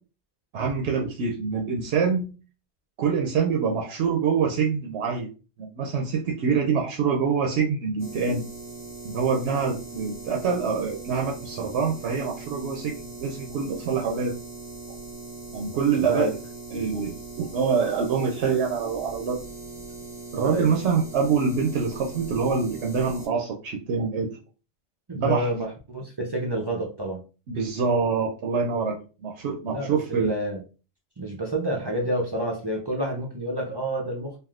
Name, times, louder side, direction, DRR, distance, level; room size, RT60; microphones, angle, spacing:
voice 1, 0.5-2.3 3.0-5.3 5.6-8.4 9.0-14.3 15.5-16.4 16.7-19.4 20.3-24.3 25.1-25.5 27.5-30.3, right 5 dB, 75° right, 0 dB, 0.8 m, -25 dB
sound 1, 8.0-23.3, right 4 dB, 15° left, 1.2 m, -40 dB
voice 2, 25.1-27.2 29.7-30.6 31.2-34.4, right 1 dB, 40° right, -1 dB, 0.4 m, -29 dB
3.4 x 2.5 x 2.4 m, 0.34 s
omnidirectional pair, 1.1 m